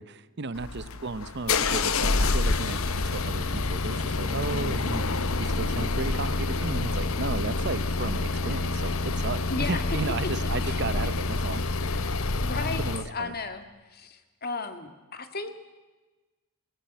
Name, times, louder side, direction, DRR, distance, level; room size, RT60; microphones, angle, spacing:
voice 1, 0.0-11.6 12.8-13.3, right 3 dB, 50° right, 15 dB, 0.8 m, -34 dB
sound 1, 0.6-13.1, left 3 dB, 70° left, 1.1 m, -27 dB
voice 2, 9.5-10.0 10.6-11.1 12.4-13.6 13.9-15.5, left 3 dB, 45° left, 9 dB, 1.9 m, -35 dB
20.5 x 20.5 x 9.2 m, 1.2 s
head